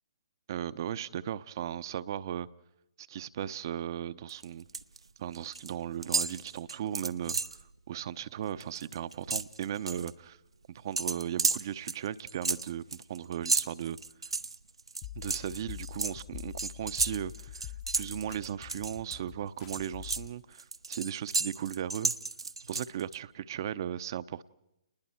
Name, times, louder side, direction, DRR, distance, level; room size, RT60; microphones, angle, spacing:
voice 1, 0.5-2.5 3.0-4.7 5.2-7.4 7.9-10.4 10.7-12.8 13.1-14.0 15.1-22.1 22.7-24.4, right 10 dB, 50° right, 0.8 m, -37 dB
sound 1, 4.3-5.0 5.2-5.7 6.0-7.6 8.0-8.2 8.5-10.1 11.0-19.2 19.6-23.2, right 3 dB, 80° right, 0.8 m, -33 dB
sound 2, 15.0-20.3, left 11 dB, 40° left, 1.0 m, -45 dB
30.0 x 20.5 x 4.4 m
figure-of-eight pair, 130°, 3 cm